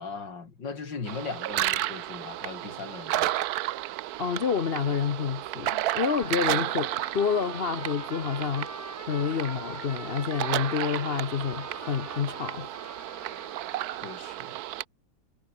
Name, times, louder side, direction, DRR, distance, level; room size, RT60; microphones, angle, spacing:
voice 1, 0.0-3.3 13.9-14.6, left 4 dB, 60° left, 3.9 m, -39 dB
sound 1, 1.1-14.8, right 14 dB, 85° right, 0.8 m, -32 dB
voice 2, 4.2-12.8, left 7 dB, 85° left, 0.5 m, -29 dB
Trumpet, 6.2-14.0, right 1 dB, 5° right, 2.7 m, -44 dB
omnidirectional pair, 2.3 m